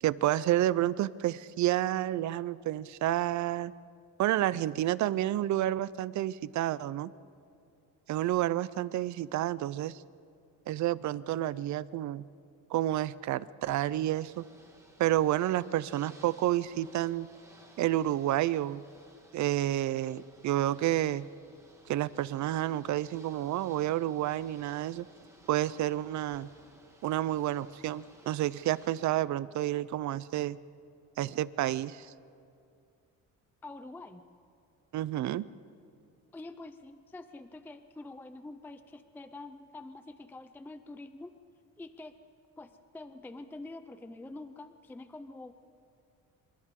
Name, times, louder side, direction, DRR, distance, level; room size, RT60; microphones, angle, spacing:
voice 1, 0.0-3.7 4.2-7.1 8.1-10.0 10.7-12.2 12.7-14.4 15.0-17.3 17.8-18.8 19.3-21.3 21.9-25.1 25.5-26.5 27.0-30.6 31.2-32.1 34.9-35.4, right 13 dB, 60° right, 18 dB, 0.6 m, -30 dB
Ocean / Boat Water vehicle, 13.7-29.1, right 1 dB, 10° right, 1.8 m, -59 dB
voice 2, 33.6-34.2 36.3-41.4 41.8-42.2 42.6-45.5, left 2 dB, 5° left, 10 dB, 0.4 m, -46 dB
28.0 x 26.0 x 3.7 m, 2.4 s
cardioid pair, 160°, 33 cm